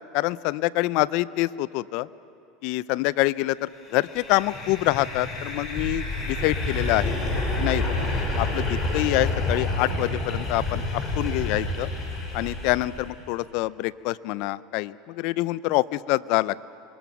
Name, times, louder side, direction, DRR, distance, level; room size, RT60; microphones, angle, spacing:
voice 1, 0.1-2.1 2.6-7.2 7.6-8.0 8.4-11.9 12.3-16.6, left 18 dB, 65° left, 19 dB, 0.5 m, -26 dB
sound 1, 3.9-13.1, left 2 dB, 35° left, 5.1 m, -28 dB
25.0 x 21.5 x 6.0 m, 2.6 s
supercardioid pair, 115°, 0 cm